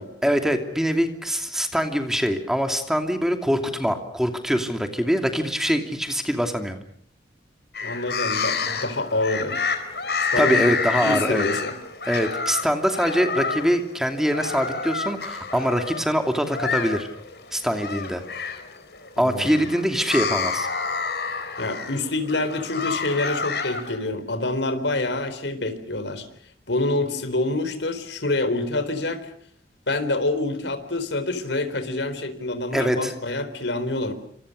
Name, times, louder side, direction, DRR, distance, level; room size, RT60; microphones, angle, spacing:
voice 1, 0.2-6.8 10.4-11.5 12.1-17.1 17.5-18.2 19.2-20.7 32.7-33.1, equal, 5° right, 5 dB, 2.7 m, -23 dB
sound 1, 7.7-23.9, left 5 dB, 65° left, 4.4 m, -29 dB
voice 2, 7.8-9.6 10.2-11.7 19.2-19.7 21.6-26.3 26.7-29.3 29.9-34.1, left 2 dB, 85° left, 11 dB, 4.0 m, -27 dB
28.0 x 27.0 x 6.6 m, 0.62 s
head